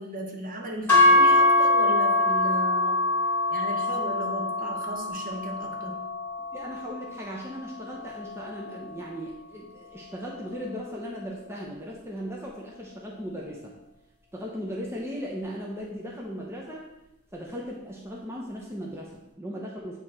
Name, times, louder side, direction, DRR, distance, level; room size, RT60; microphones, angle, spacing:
voice 1, 0.0-3.1 3.5-6.1, right 1 dB, 40° right, 2 dB, 0.9 m, -36 dB
sound 1, 0.9-9.1, left 2 dB, 10° left, 1.9 m, -24 dB
voice 2, 6.5-13.7 14.3-16.9 17.3-20.0, equal, 10° right, -3 dB, 0.7 m, -37 dB
8.7 x 3.1 x 4.3 m, 0.95 s
head